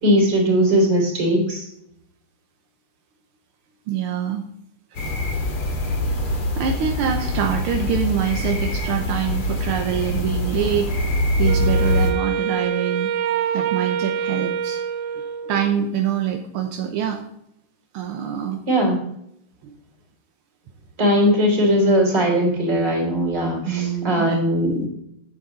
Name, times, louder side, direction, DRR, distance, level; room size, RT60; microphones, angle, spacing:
voice 1, 0.0-1.7 18.7-19.0 21.0-24.9, equal, 55° right, -1 dB, 4.0 m, -19 dB
voice 2, 3.9-4.5 4.9-5.0 6.0-13.1 13.5-14.8 15.4-17.2 17.9-18.6 19.6-19.7 23.6-24.4, right 9 dB, 90° right, 4 dB, 1.8 m, -25 dB
sound 1, 5.0-12.1, left 1 dB, 85° left, 2.7 m, -24 dB
Wind instrument woodwind instrument, 11.5-15.8, right 8 dB, 75° right, 1.3 m, -26 dB
9.9 x 7.4 x 3.9 m, 0.76 s
omnidirectional pair, 2.3 m